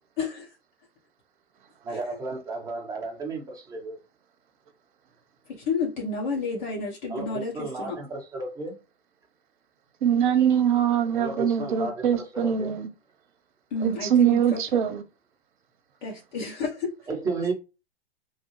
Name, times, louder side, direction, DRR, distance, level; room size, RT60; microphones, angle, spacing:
voice 1, 1.8-4.0 7.1-8.8 11.1-12.1 12.3-12.8 17.1-17.5, right 3 dB, 10° right, 0.9 m, -33 dB
voice 2, 5.7-8.0 13.7-14.6 16.0-16.9, left 4 dB, 50° left, 1.2 m, -30 dB
voice 3, 10.0-12.9 13.8-15.0, right 9 dB, 50° right, 1.0 m, -23 dB
3.2 x 2.3 x 3.1 m
figure-of-eight pair, 110°, 31 cm